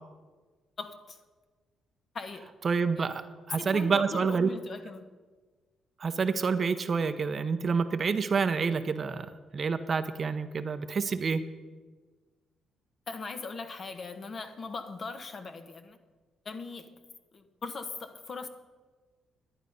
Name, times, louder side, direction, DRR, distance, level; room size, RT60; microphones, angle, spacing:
voice 1, 0.8-1.2 2.1-2.5 3.0-3.1 3.6-5.0 13.1-16.0 16.4-16.9 17.3-18.5, left 4 dB, 45° left, 8 dB, 1.0 m, -40 dB
voice 2, 2.6-3.2 3.5-4.5 6.0-11.4, right 5 dB, 45° right, 10 dB, 0.7 m, -28 dB
11.0 x 10.0 x 5.3 m, 1.4 s
cardioid pair, 90°, 0 cm